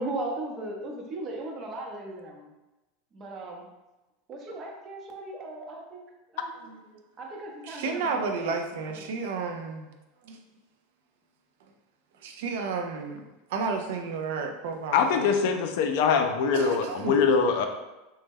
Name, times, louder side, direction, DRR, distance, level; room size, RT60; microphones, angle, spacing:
voice 1, 0.0-2.5 3.1-3.7 4.3-6.7 7.2-8.6 8.9-9.0, right 2 dB, 35° right, 1 dB, 0.7 m, -37 dB
voice 2, 7.6-9.9 10.2-10.4 12.2-13.2 13.5-15.3 16.5-17.2, right 4 dB, 75° right, 4 dB, 0.4 m, -32 dB
voice 3, 14.9-17.7, left 5 dB, 70° left, 6 dB, 0.4 m, -23 dB
3.0 x 2.1 x 3.5 m, 1.0 s
supercardioid pair, 120°, 0 cm